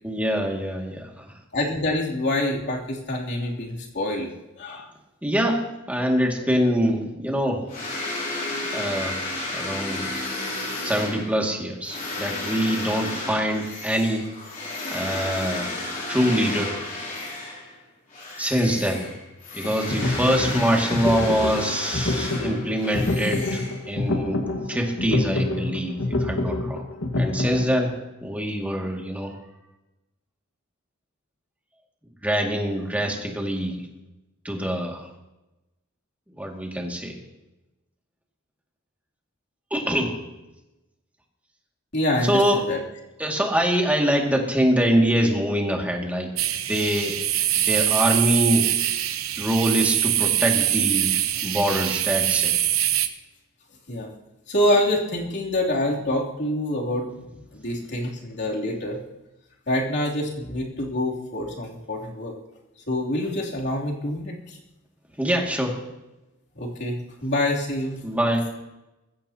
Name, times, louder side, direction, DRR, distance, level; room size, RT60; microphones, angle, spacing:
voice 1, 0.0-1.3 5.2-7.6 8.7-9.2 9.5-10.1 10.8-14.3 14.9-15.7 16.1-16.7 18.4-19.1 19.5-26.8 27.2-27.9 28.2-29.3 32.2-33.8 34.4-35.1 36.4-37.2 39.7-40.2 42.2-42.6 43.2-46.3 46.7-47.2 47.5-48.7 49.4-51.2 51.4-52.5 65.2-65.8 68.0-68.4, equal, 5° right, 0 dB, 2.2 m, -24 dB
voice 2, 1.5-4.3 4.6-4.9 19.6-19.7 41.9-42.8 50.8-50.9 53.9-54.1 54.5-59.0 59.7-62.3 62.9-64.6 66.5-68.0, left 1 dB, 55° left, -3 dB, 3.1 m, -26 dB
sound 1, 7.7-17.8 18.1-24.1, left 2 dB, 35° left, 3.4 m, -32 dB
sound 2, 19.6-27.8, left 2 dB, 80° left, 1.8 m, -27 dB
sound 3, 46.4-53.1, right 12 dB, 80° right, 0.9 m, -23 dB
20.5 x 15.5 x 2.9 m, 0.99 s
head